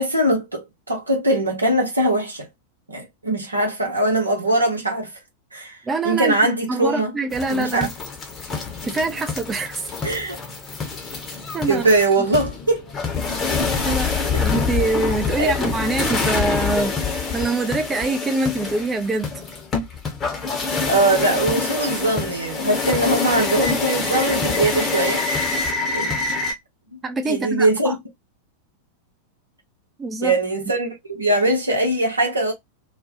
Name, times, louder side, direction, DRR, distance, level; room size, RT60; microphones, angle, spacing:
voice 1, 0.0-2.5 2.9-5.1 5.5-5.8 6.0-7.1 7.5-7.9 10.0-10.4 11.7-12.9 15.4-15.5 20.9-25.2 25.9-26.2 26.9-27.0 27.3-28.0 30.2-32.5, right 2 dB, 80° right, 1.0 m, -21 dB
voice 2, 5.9-6.4 6.7-7.9 8.8-9.9 11.5-11.8 13.8-16.9 17.3-19.3 27.0-28.0 30.0-30.3, right 3 dB, 15° right, 0.5 m, -24 dB
sound 1, 7.3-26.5, left 4 dB, 25° left, 0.8 m, -26 dB
2.5 x 2.2 x 2.6 m
figure-of-eight pair, 90°, 0 cm